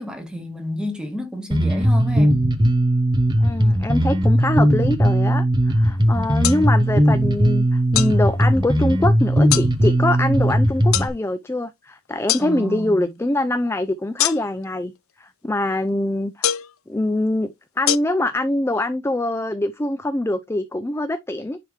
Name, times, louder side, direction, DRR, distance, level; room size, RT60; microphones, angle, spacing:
voice 1, 0.0-2.4 12.4-13.1, equal, 5° right, 1.5 m, -30 dB
Bass guitar, 1.5-11.1, equal, 20° right, 1.0 m, -18 dB
voice 2, 3.4-14.9 15.2-16.5 16.9-21.6, left 1 dB, 10° left, 0.3 m, -24 dB
sound 1, 6.4-6.6 8.0-8.1 9.5-9.7 10.9-11.1 12.3-12.5 14.2-14.6 16.4-16.7 17.9-18.0, left 13 dB, 75° left, 0.5 m, -22 dB
9.9 x 3.4 x 3.0 m
head